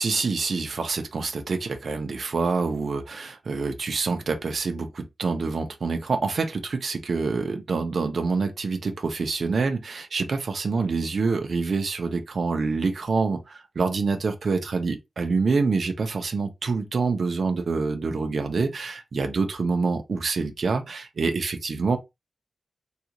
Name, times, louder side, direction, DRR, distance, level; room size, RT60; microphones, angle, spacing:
voice 1, 0.0-22.0, right 4 dB, 50° right, 0.6 m, -26 dB
3.6 x 2.4 x 2.9 m
wide cardioid pair, 165°, 0 cm